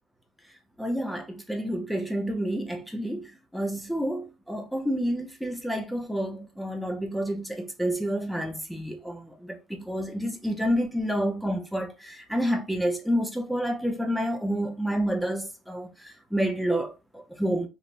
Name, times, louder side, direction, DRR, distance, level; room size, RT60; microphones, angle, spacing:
voice 1, 0.8-17.7, equal, ahead, 0.4 m, -29 dB
2.9 x 2.1 x 2.6 m
cardioid pair, 170°, 0 cm